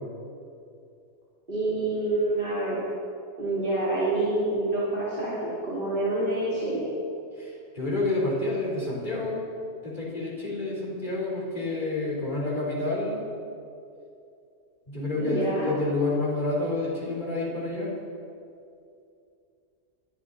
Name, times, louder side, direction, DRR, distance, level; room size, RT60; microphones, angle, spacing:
voice 1, 1.5-2.8 3.4-6.9 15.1-15.7, right 2 dB, 40° right, -10 dB, 3.2 m, -27 dB
voice 2, 7.4-9.4 9.8-13.2 14.9-17.9, left 2 dB, 35° left, -5 dB, 4.1 m, -29 dB
20.5 x 12.0 x 4.1 m, 2.5 s
omnidirectional pair, 1.4 m